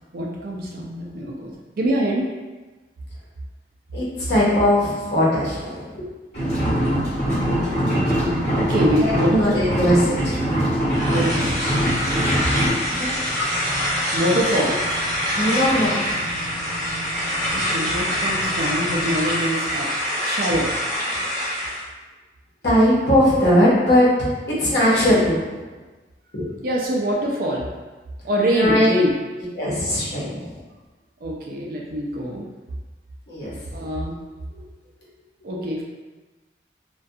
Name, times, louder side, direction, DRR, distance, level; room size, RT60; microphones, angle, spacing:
voice 1, 0.1-2.3 4.2-4.3 7.3-9.7 11.1-11.6 14.1-14.8 17.5-19.9 20.2-20.7 26.6-27.7 28.2-29.2 31.2-32.5 33.7-34.2 35.4-35.8, equal, 55° right, -2 dB, 0.3 m, -24 dB
voice 2, 3.9-6.1 9.0-10.4 12.9-13.1 15.3-16.0 22.6-24.3 24.6-25.4 26.3-26.4 28.5-28.9 29.6-30.3 33.3-33.5, equal, 65° left, -7 dB, 0.9 m, -19 dB
sound 1, 6.3-12.7, equal, 40° left, 1.2 m, -22 dB
sound 2, 10.9-21.8, equal, 15° left, 0.7 m, -25 dB
sound 3, 11.6-19.3, right 1 dB, 75° right, 0.7 m, -37 dB
2.3 x 2.2 x 2.6 m, 1.2 s
head